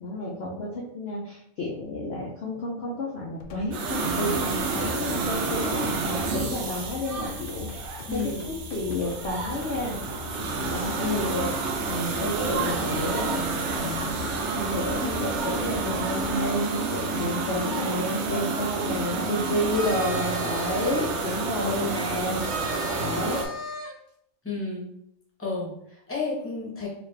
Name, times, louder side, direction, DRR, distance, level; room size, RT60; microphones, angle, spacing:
voice 1, 0.0-7.8 8.1-8.2 8.5-10.0 10.7-11.5 11.9-14.2 14.5-22.7 23.0-23.4, left 1 dB, 55° left, -4 dB, 0.8 m, -31 dB
sound 1, 3.4-16.5, left 4 dB, 80° left, 0.4 m, -41 dB
sound 2, 3.7-23.4, right 4 dB, 60° right, 0.8 m, -29 dB
voice 2, 8.1-8.5 11.0-11.4 19.2-19.8 21.6-22.1 24.4-24.9 25.4-26.9, left 3 dB, 10° left, -4 dB, 0.9 m, -31 dB
sound 3, 19.7-21.1 22.4-23.9, left 1 dB, 40° right, 1.2 m, -36 dB
4.0 x 2.4 x 3.2 m, 0.72 s
omnidirectional pair, 1.5 m